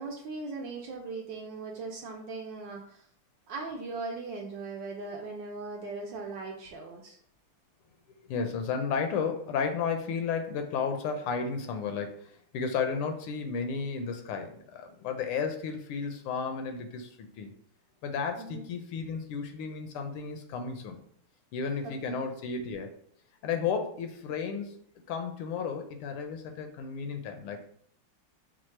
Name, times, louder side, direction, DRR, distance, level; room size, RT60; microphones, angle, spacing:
voice 1, 0.0-3.0 3.5-7.2 18.4-18.6 21.8-22.2, right 3 dB, 70° right, 1 dB, 1.1 m, -39 dB
voice 2, 8.2-17.5 18.0-21.0 21.5-22.9 23.4-24.8 25.1-27.7, left 5 dB, 80° left, 5 dB, 1.5 m, -33 dB
4.5 x 2.4 x 4.3 m, 0.62 s
omnidirectional pair, 2.4 m